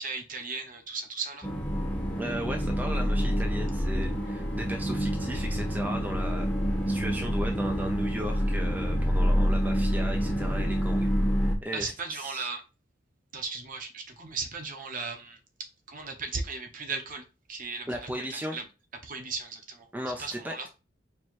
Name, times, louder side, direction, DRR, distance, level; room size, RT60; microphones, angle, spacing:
voice 1, 0.0-1.5 11.7-12.6 13.3-15.4 15.9-17.2 17.5-18.6 19.0-19.9 20.2-20.7, right 4 dB, 45° right, 0.9 m, -36 dB
sound 1, 1.4-11.5, equal, 5° left, 1.0 m, -27 dB
voice 2, 2.2-11.1 11.4-12.5 17.9-18.6 19.9-20.7, equal, 10° right, 0.5 m, -37 dB
4.6 x 3.1 x 3.0 m
head